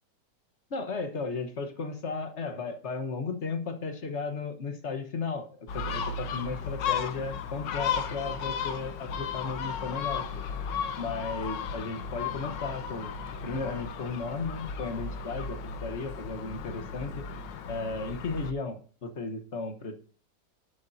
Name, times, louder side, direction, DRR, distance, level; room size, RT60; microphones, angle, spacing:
voice 1, 0.7-10.4 11.0-13.1 13.4-17.2 17.7-20.0, left 4 dB, 45° left, 8 dB, 1.4 m, -35 dB
Gull seagull, 5.7-18.5, left 6 dB, 85° left, 1.7 m, -35 dB
11.5 x 8.7 x 2.7 m, 0.42 s
omnidirectional pair, 1.9 m